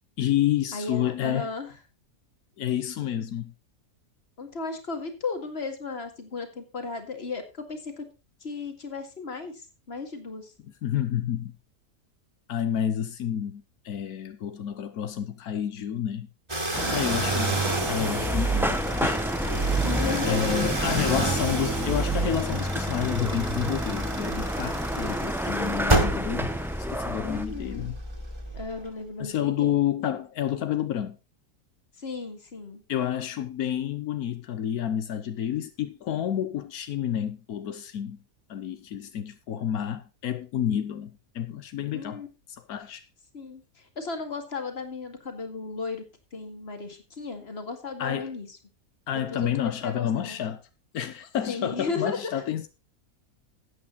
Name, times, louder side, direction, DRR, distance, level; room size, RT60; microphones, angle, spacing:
voice 1, 0.2-1.5 2.6-3.5 10.6-11.5 12.5-16.3 16.9-17.6 17.9-19.3 20.3-26.5 26.9-28.0 29.2-31.2 32.9-38.2 38.5-42.2 42.5-43.0 48.0-48.3 49.1-50.6 50.9-52.7, left 10 dB, 85° left, 1.4 m, -29 dB
voice 2, 0.7-1.7 4.4-8.1 8.4-10.5 16.8-17.3 19.8-20.4 20.9-21.4 27.2-27.9 28.5-29.8 32.0-32.8 41.9-42.3 43.3-46.0 46.3-48.6 49.3-50.4 51.5-52.4, left 4 dB, 45° left, 2.2 m, -35 dB
sound 1, 16.5-28.9, right 2 dB, 20° right, 2.0 m, -30 dB
sound 2, 16.7-27.4, equal, ahead, 0.6 m, -30 dB
13.0 x 8.7 x 4.0 m
omnidirectional pair, 1.5 m